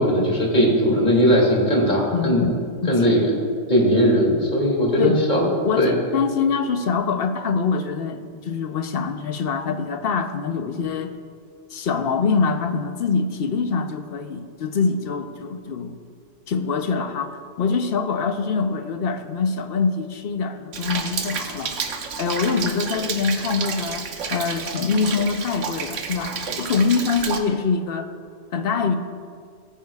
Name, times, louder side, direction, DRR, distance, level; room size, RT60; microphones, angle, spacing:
voice 1, 0.0-2.5 2.9-3.3 3.7-5.5 5.8-5.9, equal, 40° left, -2 dB, 2.4 m, -18 dB
voice 2, 2.1-2.5 2.8-3.2 5.0-5.2 5.6-11.1 11.7-15.9 16.5-21.8 22.2-28.1 28.5-29.0, left 5 dB, 55° left, 8 dB, 0.9 m, -24 dB
Rain, 20.7-27.4, right 5 dB, 85° right, 1.2 m, -30 dB
17.0 x 10.0 x 2.4 m, 2.1 s
omnidirectional pair, 1.3 m